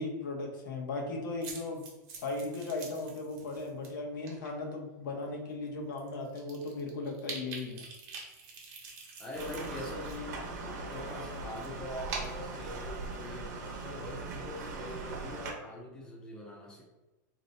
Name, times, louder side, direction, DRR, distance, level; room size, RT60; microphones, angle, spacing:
voice 1, 0.0-1.8 2.2-7.8, left 3 dB, 80° left, 1 dB, 0.8 m, -37 dB
sound 1, 1.4-3.9 4.2-4.5 5.2-5.3 5.7-5.8 6.0-10.2 10.4-13.3, right 4 dB, 35° right, 0.9 m, -45 dB
voice 2, 9.2-10.4 10.9-13.5 13.8-16.8, left 1 dB, 5° left, -3 dB, 0.5 m, -43 dB
sound 2, 9.3-15.5, right 3 dB, 60° right, 0.7 m, -40 dB
2.6 x 2.1 x 3.9 m, 1.1 s
supercardioid pair, 165°, 10 cm